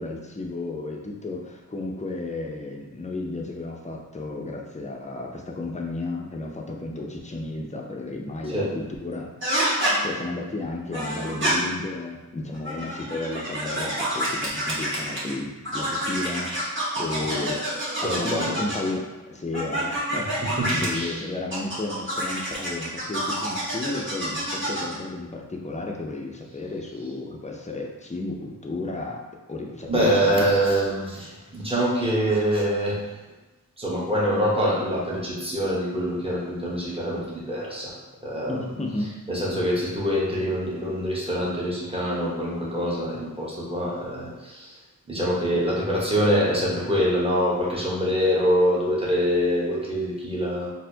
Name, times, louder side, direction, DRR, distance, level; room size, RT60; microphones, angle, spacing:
voice 1, 0.0-9.3 9.8-17.6 17.9-20.4 20.7-29.2 29.5-30.5 38.5-39.1 45.2-45.6, left 2 dB, 20° left, 0 dB, 0.5 m, -33 dB
sound 1, 9.4-9.9 10.9-11.5 12.5-15.3 15.6-18.9 19.5-20.9 21.5-25.0, right 1 dB, 35° right, 1.5 m, -28 dB
voice 2, 17.9-18.5 20.4-21.2 29.9-33.0 33.8-37.9 38.2-38.7 39.3-44.7 45.1-50.7, equal, 15° right, -6 dB, 1.1 m, -25 dB
4.2 x 2.1 x 2.7 m, 1.2 s
cardioid pair, 50°, 35 cm